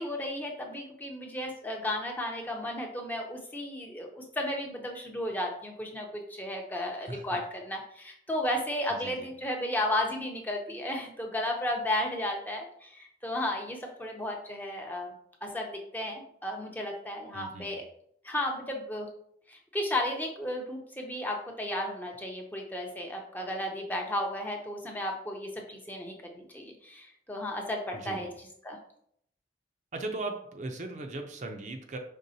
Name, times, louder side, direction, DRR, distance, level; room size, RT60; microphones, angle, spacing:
voice 1, 0.0-15.1 15.4-17.8 18.2-19.1 19.5-28.3 28.6-28.8, left 1 dB, 10° left, 0 dB, 0.6 m, -34 dB
voice 2, 6.9-7.4 8.9-9.3 17.3-17.8 27.9-28.3 29.9-32.0, right 2 dB, 45° right, 4 dB, 0.5 m, -38 dB
5.2 x 3.5 x 2.7 m, 0.68 s
head